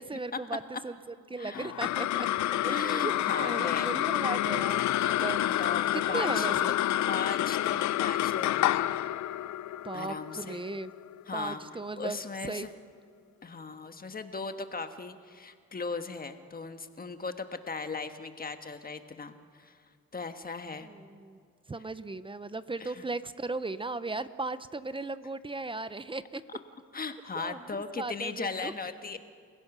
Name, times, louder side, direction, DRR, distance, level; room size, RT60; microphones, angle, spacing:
voice 1, 0.0-2.3 2.6-5.5 5.9-6.8 9.8-10.9 11.3-12.2 12.4-12.7 20.8-21.4 21.7-26.4 27.4-27.6 27.9-28.7, right 3 dB, 15° right, 14 dB, 0.7 m, -37 dB
voice 2, 1.4-1.7 2.7-3.9 4.4-4.7 5.6-6.6 7.1-8.8 9.9-10.6 11.3-11.6 12.0-12.7 13.4-19.8 20.1-20.9 22.8-23.0 26.9-29.2, left 4 dB, 30° left, 8 dB, 1.4 m, -37 dB
sound 1, 1.5-12.2, left 13 dB, 70° left, 0.6 m, -29 dB
28.0 x 16.0 x 6.1 m, 2.1 s
cardioid pair, 90°, 30 cm